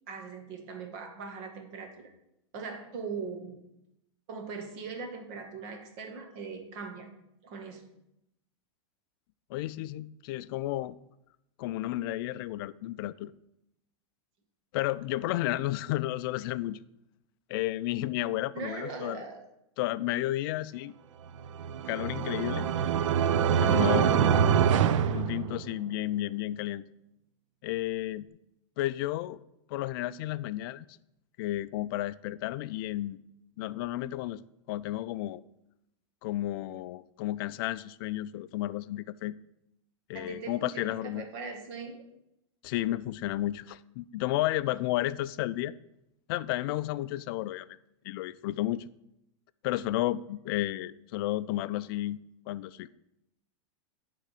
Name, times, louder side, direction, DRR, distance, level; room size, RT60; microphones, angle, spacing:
voice 1, 0.1-2.1 2.5-3.6 4.3-7.1 7.4-7.9 18.5-19.4 40.1-42.0, right 5 dB, 45° right, 4 dB, 1.7 m, -40 dB
voice 2, 9.5-11.0 11.6-13.3 14.7-16.8 17.5-19.2 19.8-20.9 21.9-22.7 23.6-24.6 25.1-26.8 27.6-28.3 28.8-29.4 29.7-30.9 31.4-33.2 33.6-34.4 34.7-35.4 36.2-39.3 40.1-41.2 42.6-45.7 46.3-47.8 48.0-48.8 49.6-52.2 52.5-52.9, left 15 dB, 45° left, 15 dB, 0.4 m, -32 dB
sound 1, 21.4-26.0, right 8 dB, 70° right, 0.5 m, -25 dB
9.5 x 3.9 x 6.5 m, 0.83 s
supercardioid pair, 155°, 16 cm